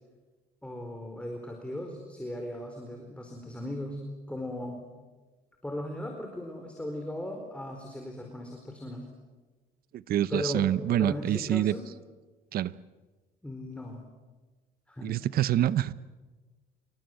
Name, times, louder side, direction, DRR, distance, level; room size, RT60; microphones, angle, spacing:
voice 1, 0.6-4.0 4.3-4.9 5.6-9.1 10.3-10.7 11.0-11.9 13.4-14.1 14.9-15.2 15.6-15.7, left 1 dB, 5° left, 2 dB, 4.5 m, -37 dB
voice 2, 9.9-11.7 12.5-12.7 15.0-15.9, right 12 dB, 60° right, 17 dB, 0.9 m, -26 dB
28.5 x 23.5 x 7.9 m, 1.3 s
cardioid pair, 110°, 17 cm